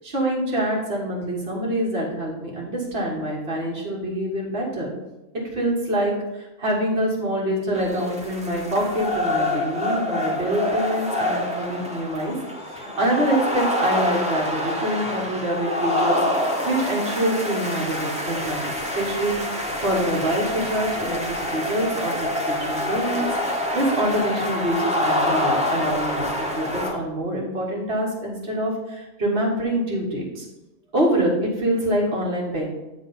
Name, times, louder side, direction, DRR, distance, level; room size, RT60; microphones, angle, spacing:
voice 1, 0.0-4.9 5.5-12.3 12.7-18.7 18.9-19.4 19.8-22.2 22.5-30.4 30.9-32.7, right 1 dB, 50° right, -3 dB, 1.7 m, -25 dB
sound 1, 7.7-26.9, left 1 dB, 5° right, 0.8 m, -26 dB
9.6 x 3.2 x 5.4 m, 1.0 s
omnidirectional pair, 1.4 m